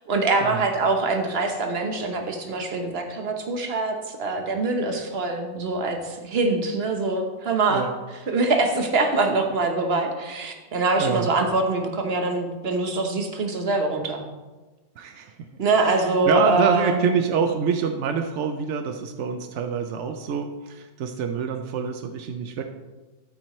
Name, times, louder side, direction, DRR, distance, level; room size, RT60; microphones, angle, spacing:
voice 1, 0.1-14.2 15.6-17.0, right 3 dB, 40° right, 4 dB, 1.1 m, -24 dB
voice 2, 11.0-11.3 15.0-15.3 15.8-22.6, right 6 dB, 75° right, 6 dB, 0.6 m, -26 dB
12.0 x 8.6 x 3.1 m, 1.2 s
omnidirectional pair, 1.9 m